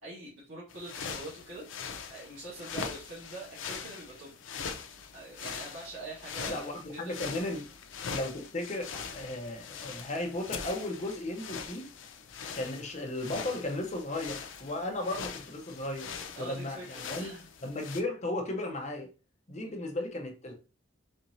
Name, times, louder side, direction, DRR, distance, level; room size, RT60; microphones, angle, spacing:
voice 1, 0.0-4.3 5.1-7.3 16.3-17.5 19.6-19.9, right 2 dB, 90° right, 1.6 m, -45 dB
sound 1, 0.7-18.0, left 6 dB, 70° left, 0.5 m, -42 dB
voice 2, 6.5-7.7 8.1-11.9 12.5-16.1 16.4-17.3 17.6-19.1 19.5-20.5, left 1 dB, 35° left, 0.7 m, -35 dB
4.3 x 2.9 x 2.6 m
head